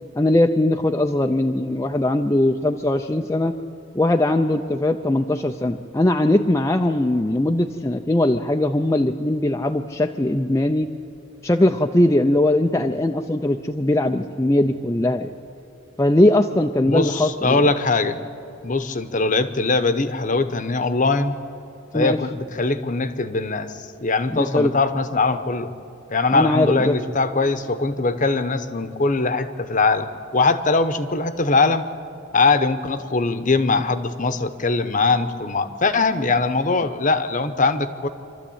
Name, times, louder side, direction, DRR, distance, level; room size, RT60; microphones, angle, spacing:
voice 1, 0.2-3.6 3.9-10.9 11.4-15.3 16.0-17.6 21.9-22.2 24.3-24.7 26.3-27.0, left 1 dB, 15° left, 4 dB, 0.5 m, -20 dB
voice 2, 16.9-18.2 18.6-21.3 21.9-23.7 24.0-25.7 26.1-31.9 32.3-38.1, left 3 dB, 40° left, 11 dB, 0.9 m, -21 dB
26.0 x 13.0 x 8.7 m, 2.7 s
head